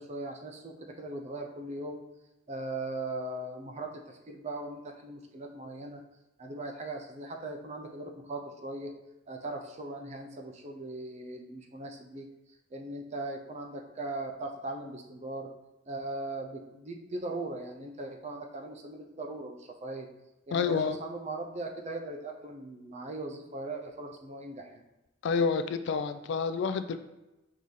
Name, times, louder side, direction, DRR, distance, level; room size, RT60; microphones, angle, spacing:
voice 1, 0.0-2.0 2.5-6.0 6.4-8.9 9.3-12.3 12.7-15.5 15.9-20.1 20.5-24.8, right 2 dB, 35° right, 3 dB, 0.5 m, -39 dB
voice 2, 20.5-21.0 25.2-27.0, left 5 dB, 60° left, 10 dB, 0.3 m, -28 dB
4.7 x 2.8 x 3.8 m, 1.0 s
head